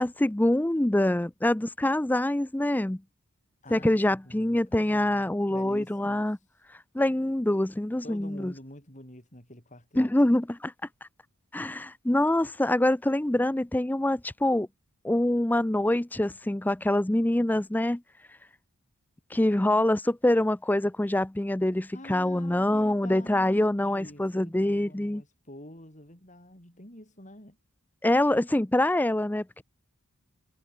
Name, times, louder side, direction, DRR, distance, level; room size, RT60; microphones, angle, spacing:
voice 1, 0.0-3.0 3.7-6.4 6.9-8.5 10.0-10.7 11.5-14.7 15.0-18.0 19.3-25.2 28.0-29.6, left 1 dB, 10° left, 0.4 m, -25 dB
voice 2, 3.6-6.2 8.0-10.1 21.9-27.6, left 1 dB, 35° left, 6.9 m, -47 dB
head